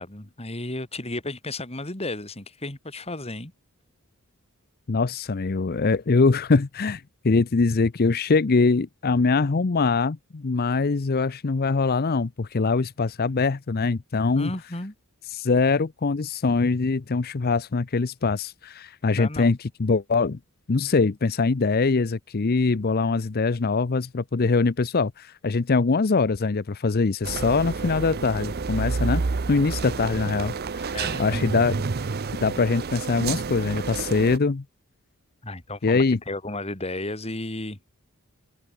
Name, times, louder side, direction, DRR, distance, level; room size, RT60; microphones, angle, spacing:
voice 1, 0.0-3.5 14.4-14.9 19.1-19.6 30.9-31.6 35.4-37.9, left 2 dB, 25° left, 2.7 m, -33 dB
voice 2, 4.9-14.5 15.3-20.4 20.7-29.2 29.5-31.8 32.4-34.6 35.8-36.2, left 4 dB, 45° left, 0.6 m, -23 dB
sound 1, 27.2-34.4, right 4 dB, 45° right, 0.6 m, -29 dB
open air
head